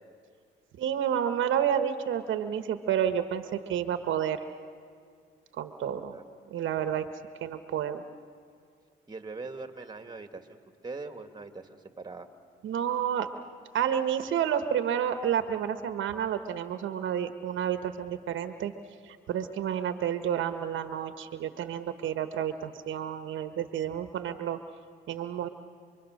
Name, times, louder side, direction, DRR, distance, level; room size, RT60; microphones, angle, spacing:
voice 1, 0.8-4.4 5.5-6.1 6.5-7.0 7.4-8.0 12.6-13.3 13.7-18.7 19.0-24.6 25.1-25.5, right 9 dB, 75° right, 9 dB, 1.3 m, -30 dB
voice 2, 9.1-12.3, right 3 dB, 20° right, 7 dB, 2.0 m, -42 dB
29.5 x 23.0 x 6.5 m, 2.2 s
cardioid pair, 90°, 20 cm